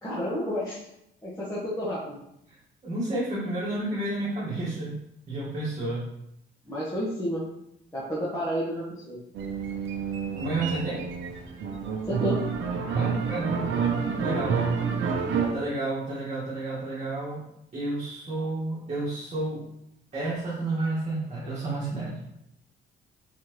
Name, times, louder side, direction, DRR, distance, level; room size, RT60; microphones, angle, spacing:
voice 1, 0.0-0.8 1.2-2.2 6.7-7.4 7.9-9.2 12.1-12.4, equal, 15° left, -9 dB, 1.4 m, -30 dB
voice 2, 2.8-5.0 5.3-6.1 10.4-11.0 12.9-13.7 14.2-14.6 15.5-17.4 17.7-19.6 20.1-22.2, right 2 dB, 35° right, -8 dB, 1.7 m, -31 dB
sound 1, 9.3-15.5, right 6 dB, 75° right, 0.7 m, -28 dB
4.3 x 3.9 x 3.1 m, 0.80 s
cardioid pair, 90°, 20 cm